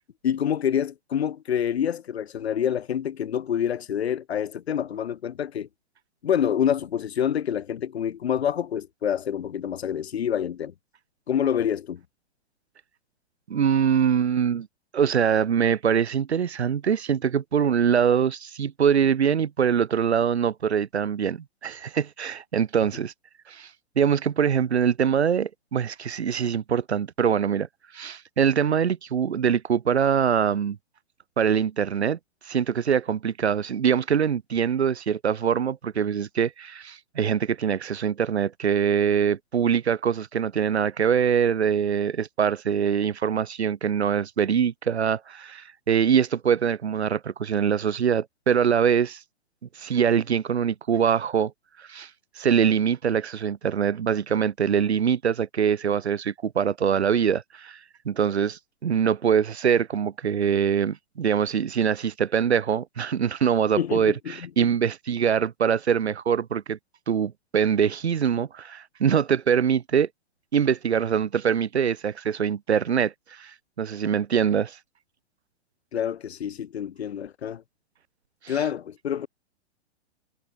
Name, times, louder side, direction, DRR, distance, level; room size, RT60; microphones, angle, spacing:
voice 1, 0.2-5.7 6.2-10.7 11.3-12.0 63.8-64.7 75.9-77.6 78.5-79.3, left 9 dB, 75° left, 2.8 m, -27 dB
voice 2, 13.5-14.7 14.9-21.4 21.6-23.1 23.5-23.7 24.0-27.7 27.9-30.8 31.4-32.2 32.4-49.2 49.8-51.5 51.8-52.1 52.4-57.8 58.1-66.8 67.1-70.1 70.5-74.8 78.4-78.6, right 7 dB, 85° right, 1.8 m, -23 dB
hypercardioid pair, 120°, 32 cm